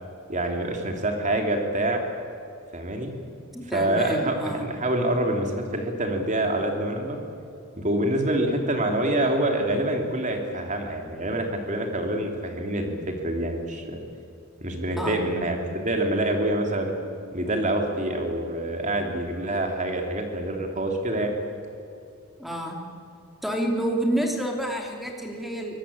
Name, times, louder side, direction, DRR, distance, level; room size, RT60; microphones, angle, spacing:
voice 1, 0.3-2.0 2.7-3.1 3.7-7.2 7.8-14.0 14.6-16.9 17.3-21.3, right 1 dB, 35° right, 3 dB, 3.3 m, -26 dB
voice 2, 3.5-4.6 15.0-15.2 22.4-22.8 23.4-25.8, right 1 dB, ahead, 1 dB, 3.1 m, -28 dB
23.5 x 19.0 x 8.9 m, 2.6 s
head